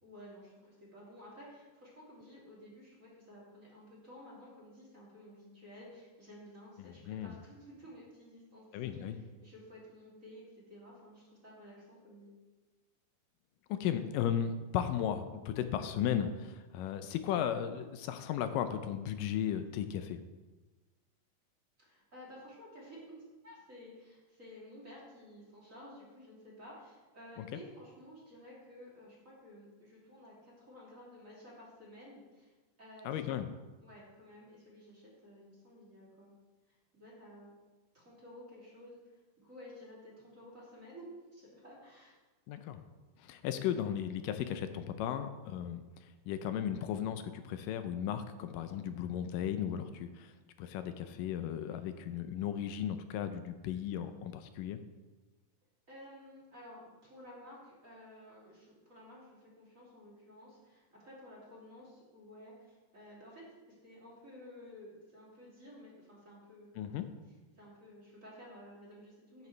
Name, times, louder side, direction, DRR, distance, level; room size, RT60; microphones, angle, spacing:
voice 1, 0.0-12.3 21.8-32.5 32.8-33.4 33.8-36.3 36.9-37.5 37.9-39.0 39.4-42.2 55.9-67.0 67.5-69.5, equal, 25° right, -6 dB, 2.9 m, -53 dB
voice 2, 6.8-7.4 8.7-9.2 13.7-20.2 27.4-27.6 33.0-33.5 42.5-42.8 43.2-45.8 46.3-50.3 50.6-54.8 66.8-67.0, left 9 dB, 85° left, 9 dB, 2.3 m, -35 dB
12.0 x 9.3 x 3.3 m, 1.2 s
omnidirectional pair, 3.8 m